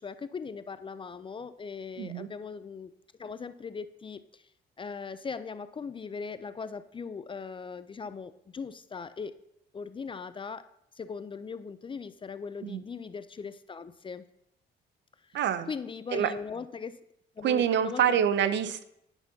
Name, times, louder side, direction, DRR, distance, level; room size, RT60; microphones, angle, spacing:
voice 1, 0.0-2.9 3.2-4.4 4.8-9.4 9.7-14.3 15.2-15.4 15.7-17.0 17.4-18.2, left 5 dB, 25° left, 13 dB, 0.3 m, -39 dB
voice 2, 2.0-2.3 12.6-12.8 15.3-15.7 16.1-16.3 17.4-18.8, right 9 dB, 65° right, 13 dB, 0.6 m, -26 dB
9.7 x 5.8 x 2.7 m, 0.77 s
cardioid pair, 90°, 20 cm